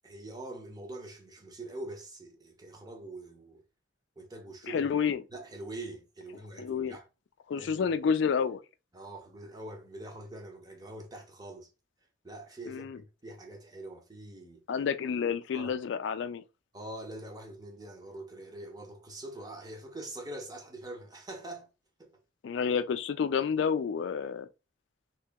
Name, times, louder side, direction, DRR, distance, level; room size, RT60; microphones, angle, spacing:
voice 1, 0.0-3.6 4.2-7.1 7.6-8.0 8.9-11.7 12.2-14.6 15.5-15.7 16.7-21.7 22.0-22.2, right 1 dB, 20° right, 0.8 m, -44 dB
voice 2, 4.7-5.2 6.6-7.0 7.5-8.6 12.7-13.0 14.7-16.4 22.4-24.5, left 6 dB, 70° left, 0.3 m, -29 dB
2.8 x 2.8 x 3.4 m
head